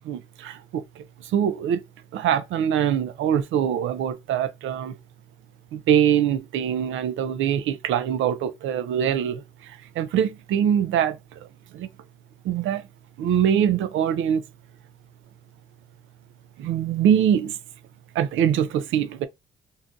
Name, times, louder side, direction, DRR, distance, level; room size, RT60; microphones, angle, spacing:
voice 1, 0.1-0.8 1.3-1.8 2.1-4.9 5.7-9.4 10.0-11.2 11.7-11.9 12.4-12.8 13.2-14.4 16.6-17.5 18.2-19.3, right 9 dB, 80° right, 0.5 m, -23 dB
2.7 x 2.4 x 3.7 m
cardioid pair, 90°, 20 cm